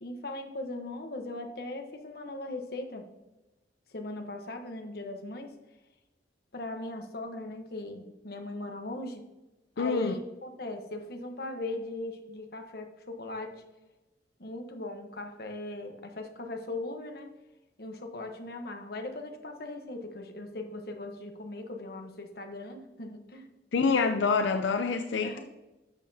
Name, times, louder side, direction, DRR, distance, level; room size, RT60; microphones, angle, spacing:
voice 1, 0.0-3.1 3.9-5.5 6.5-9.2 9.8-13.6 14.4-17.3 17.8-23.5 25.2-25.4, left 2 dB, 55° left, 4 dB, 1.0 m, -39 dB
voice 2, 9.8-10.1 23.7-25.4, left 4 dB, 85° left, 6 dB, 0.5 m, -26 dB
11.5 x 6.6 x 2.8 m, 1.0 s
head